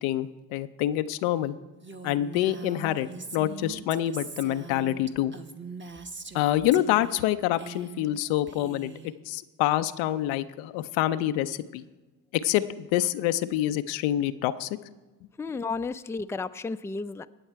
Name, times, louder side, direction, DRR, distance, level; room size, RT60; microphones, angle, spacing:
voice 1, 0.0-1.6 2.0-5.3 6.3-8.9 9.3-11.8 12.3-14.7, left 13 dB, 85° left, 12 dB, 0.6 m, -26 dB
Female speech woman speaking, 1.8-6.4 6.7-7.3 7.5-8.2 8.5-9.1, right 4 dB, 25° right, 1.0 m, -42 dB
voice 2, 15.4-17.3, left 4 dB, 5° left, 10 dB, 0.4 m, -32 dB
19.0 x 7.1 x 4.5 m, 1.2 s
hypercardioid pair, 45°, 46 cm